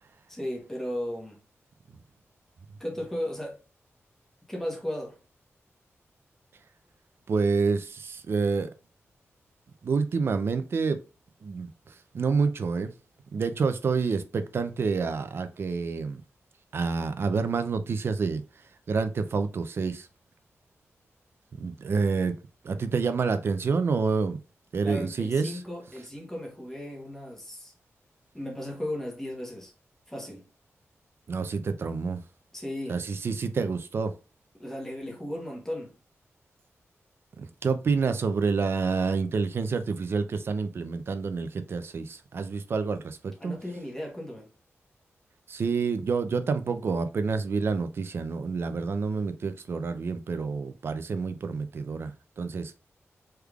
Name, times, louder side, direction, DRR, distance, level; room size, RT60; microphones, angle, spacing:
voice 1, 0.3-1.4 2.8-3.6 4.5-5.2 24.8-27.7 28.3-29.7 30.1-30.4 32.5-33.0 34.6-36.0 43.4-44.5, left 1 dB, 10° left, 1.0 m, -35 dB
voice 2, 7.3-8.7 9.8-11.0 11.4-12.9 13.3-16.2 16.7-18.4 18.9-20.1 21.6-22.4 22.6-24.4 24.7-25.6 31.3-32.2 32.9-34.1 37.4-43.5 45.5-52.8, right 4 dB, 55° right, 0.4 m, -28 dB
3.5 x 3.2 x 2.3 m
wide cardioid pair, 160°, 5 cm